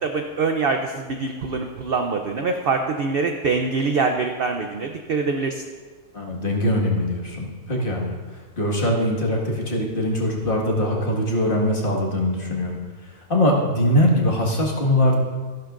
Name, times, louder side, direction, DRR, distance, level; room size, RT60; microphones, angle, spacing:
voice 1, 0.0-5.6, right 4 dB, 55° right, 4 dB, 0.6 m, -24 dB
voice 2, 6.1-8.2 8.6-12.8 13.3-15.2, left 1 dB, 35° left, -2 dB, 1.9 m, -22 dB
14.5 x 11.5 x 2.5 m, 1.4 s
omnidirectional pair, 1.6 m